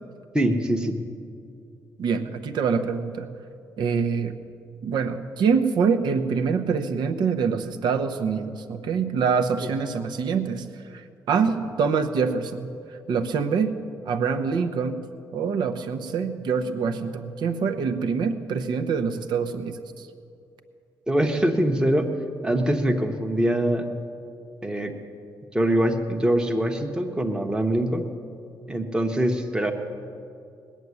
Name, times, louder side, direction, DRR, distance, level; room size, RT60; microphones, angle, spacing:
voice 1, 0.3-1.0 9.6-9.7 21.1-22.1 22.4-23.9 24.6-24.9 25.5-28.0 28.7-29.7, right 1 dB, 10° right, 3 dB, 1.0 m, -23 dB
voice 2, 2.0-3.3 3.8-4.4 4.8-13.8 14.0-15.0 15.3-20.1, right 5 dB, 70° right, 8 dB, 1.0 m, -25 dB
19.0 x 7.4 x 9.5 m, 2.5 s
cardioid pair, 140°, 8 cm